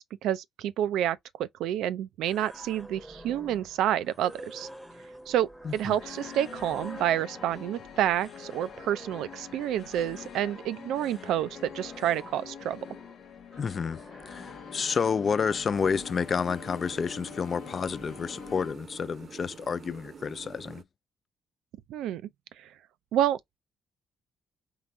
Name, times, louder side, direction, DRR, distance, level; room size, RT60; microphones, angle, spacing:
voice 1, 0.0-4.7 5.3-12.8 21.9-22.2 22.6-22.7 23.1-23.6, right 11 dB, 85° right, 0.4 m, -29 dB
sound 1, 2.2-19.2, equal, 5° right, 0.8 m, -49 dB
best classical music done on keyboard by kris klavenes, 6.0-18.7, left 8 dB, 75° left, 0.7 m, -45 dB
voice 2, 13.6-14.0 14.3-20.8, left 6 dB, 45° left, 0.3 m, -30 dB
sound 2, 15.7-20.8, right 5 dB, 50° right, 0.7 m, -47 dB
3.9 x 3.4 x 3.1 m
cardioid pair, 90°, 0 cm